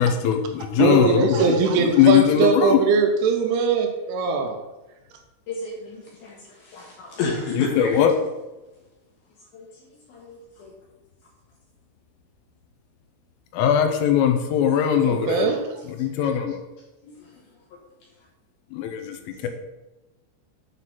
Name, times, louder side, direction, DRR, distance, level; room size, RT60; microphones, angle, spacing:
voice 1, 0.0-2.8 7.5-8.1 13.5-15.5 15.9-16.6 18.7-19.5, left 9 dB, 85° left, 6 dB, 3.2 m, -20 dB
voice 2, 0.8-4.6 15.0-15.6, right 5 dB, 80° right, 4 dB, 3.0 m, -21 dB
voice 3, 5.5-8.0 9.5-9.8 10.1-10.7 16.2-16.3 17.2-17.3 19.3-19.4, left 3 dB, 70° left, -3 dB, 2.5 m, -32 dB
9.2 x 4.0 x 5.7 m, 1.1 s
omnidirectional pair, 5.8 m